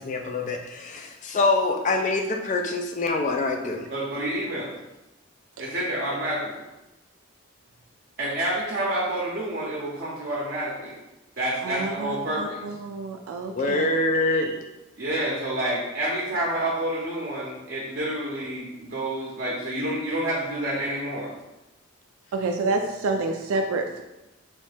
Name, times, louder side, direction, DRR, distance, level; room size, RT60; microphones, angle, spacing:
voice 1, 0.0-3.9 13.6-14.6, left 2 dB, 35° left, 3 dB, 0.4 m, -25 dB
voice 2, 3.9-4.7 5.6-6.6 8.2-10.9 11.4-12.6 15.0-21.3, right 1 dB, 45° right, -5 dB, 0.7 m, -28 dB
voice 3, 11.6-13.9 14.3-14.5 22.3-24.0, right 3 dB, 85° right, 3 dB, 0.3 m, -29 dB
3.0 x 2.7 x 3.4 m, 0.99 s
head